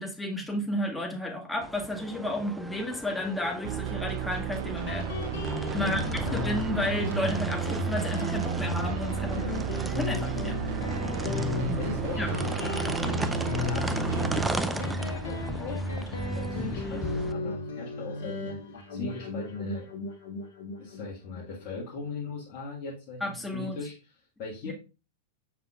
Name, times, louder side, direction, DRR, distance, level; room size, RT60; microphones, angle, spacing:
voice 1, 0.0-5.1 5.7-9.4 9.8-10.6 11.6-11.8 12.2-12.3 23.2-23.8 24.7-24.8, left 1 dB, 5° left, 1 dB, 1.7 m, -32 dB
sound 1, 1.6-17.3, right 2 dB, 10° right, 0.5 m, -37 dB
sound 2, 3.6-14.5, right 9 dB, 60° right, 0.5 m, -33 dB
Guitar, 4.9-22.1, left 2 dB, 70° left, 1.3 m, -34 dB
voice 2, 5.8-6.4 9.2-9.6 11.2-13.2 13.6-15.8 16.1-18.6 18.9-19.9 20.8-24.7, left 3 dB, 50° left, -4 dB, 1.6 m, -39 dB
7.3 x 5.6 x 2.4 m, 0.32 s
hypercardioid pair, 95°, 0 cm